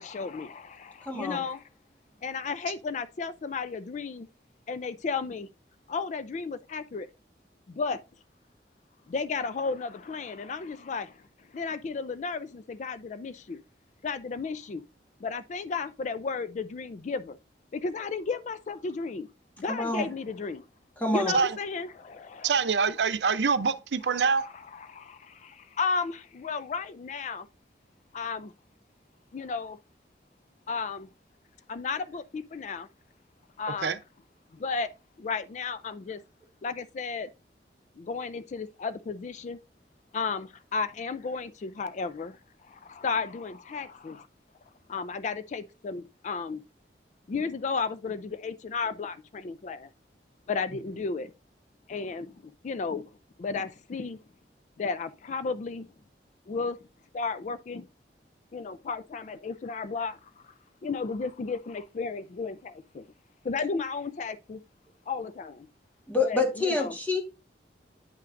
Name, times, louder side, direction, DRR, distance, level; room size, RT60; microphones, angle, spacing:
voice 1, 0.0-1.6 2.2-4.3 4.7-5.5 5.9-7.1 7.7-8.0 9.1-13.6 14.0-14.8 15.2-17.4 17.7-19.3 19.6-20.7 21.1-22.6 24.1-27.5 28.1-28.5 29.3-29.8 30.7-31.1 31.7-32.9 33.6-34.0 34.5-34.9 35.2-36.2 36.6-37.3 38.0-39.6 40.1-42.4 42.7-44.3 44.9-46.6 47.3-49.9 50.5-51.3 51.9-53.0 53.4-54.2 54.8-55.9 56.5-56.8 57.1-57.9 58.5-60.5 60.8-63.1 63.4-64.6 65.1-65.7 66.2-67.0, left 4 dB, 40° left, 0.3 m, -34 dB
voice 2, 1.1-1.4 19.7-20.1 21.0-21.3 66.1-67.2, left 3 dB, 10° left, 1.4 m, -27 dB
voice 3, 22.4-24.4 33.8-34.0, right 5 dB, 80° right, 0.5 m, -25 dB
9.1 x 5.7 x 2.5 m
head